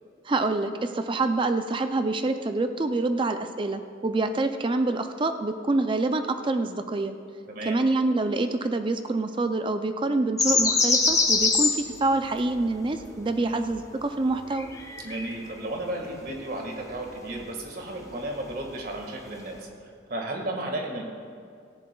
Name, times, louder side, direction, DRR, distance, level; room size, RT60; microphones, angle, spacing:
voice 1, 0.3-7.1 7.6-14.7, right 2 dB, 25° right, 8 dB, 0.4 m, -26 dB
voice 2, 7.5-7.8 13.4-13.6 15.0-19.6 20.1-21.0, right 1 dB, 50° right, 1 dB, 1.8 m, -33 dB
sound 1, 10.4-11.9 12.5-12.6 12.9-13.2 13.8-14.0 14.5-15.3 16.3-16.4 17.1-17.5 18.0-18.1 19.3-19.4, left 3 dB, 15° left, 0.8 m, -24 dB
17.5 x 14.5 x 2.3 m, 2.3 s
head